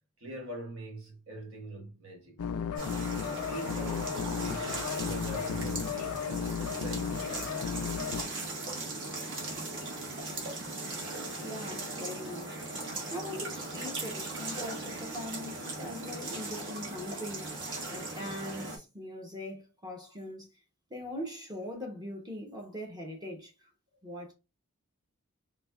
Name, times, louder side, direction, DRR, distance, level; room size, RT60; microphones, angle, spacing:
voice 1, 0.2-2.6 3.4-6.3 6.6-7.5, right 1 dB, 75° right, 1.4 m, -44 dB
sound 1, 2.4-8.2, left 7 dB, 80° left, 0.4 m, -34 dB
sound 2, 2.8-18.8, right 2 dB, 55° right, 1.2 m, -38 dB
Bowed string instrument, 4.2-9.8 10.5-10.6, left 3 dB, 35° right, 1.5 m, -54 dB
voice 2, 11.4-12.6 13.1-20.5 20.9-23.7 24.0-24.3, left 1 dB, 20° right, 0.7 m, -41 dB
4.0 x 2.7 x 2.2 m
head